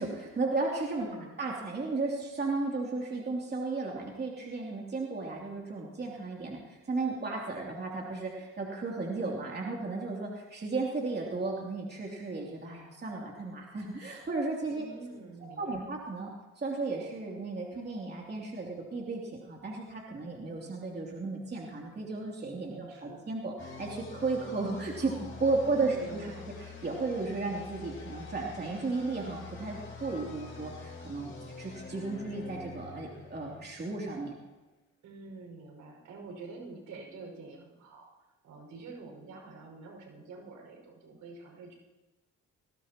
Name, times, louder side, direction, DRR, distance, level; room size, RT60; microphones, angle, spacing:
voice 1, 0.0-1.1 1.4-14.9 15.6-16.3 16.6-25.1 25.4-26.3 26.8-34.3, right 3 dB, 35° right, -2 dB, 3.0 m, -34 dB
voice 2, 1.0-1.4 14.7-15.9 22.7-23.2 25.6-26.5 35.0-38.1 38.4-41.7, right 3 dB, 80° right, 1 dB, 5.8 m, -47 dB
sound 1, 23.6-34.2, left 4 dB, 40° left, 4.0 m, -46 dB
20.5 x 17.0 x 3.0 m, 1.1 s
cardioid pair, 90°, 30 cm